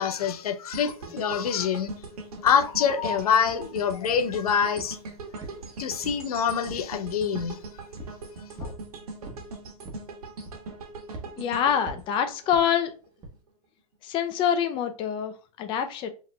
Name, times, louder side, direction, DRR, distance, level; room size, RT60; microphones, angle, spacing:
voice 1, 0.0-1.9 2.4-5.0 5.8-7.6 8.6-8.7, left 7 dB, 70° left, 0.6 m, -25 dB
sound 1, 0.7-12.9 13.3-13.5, right 3 dB, 70° right, 1.3 m, -41 dB
sound 2, 3.5-3.6 4.1-4.4 4.8-5.0 5.4-6.3 6.6-6.9 7.3-7.6 8.0-8.2 8.6-8.8 9.2-9.5 9.8-10.1 10.4-10.8 11.1-11.3 11.9-12.1 12.5-12.7 13.2-13.4, right 2 dB, 20° right, 1.0 m, -41 dB
voice 2, 11.4-12.9 14.0-16.1, left 8 dB, 25° left, 0.4 m, -26 dB
5.5 x 3.0 x 2.2 m
hypercardioid pair, 115°, 20 cm